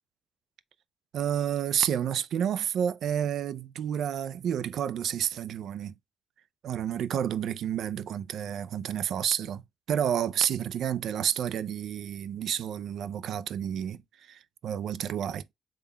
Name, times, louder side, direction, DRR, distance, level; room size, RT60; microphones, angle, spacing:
voice 1, 1.1-6.0 6.6-9.6 9.9-15.5, right 9 dB, 70° right, 0.3 m, -30 dB
3.7 x 2.2 x 3.3 m
cardioid pair, 90°, 0 cm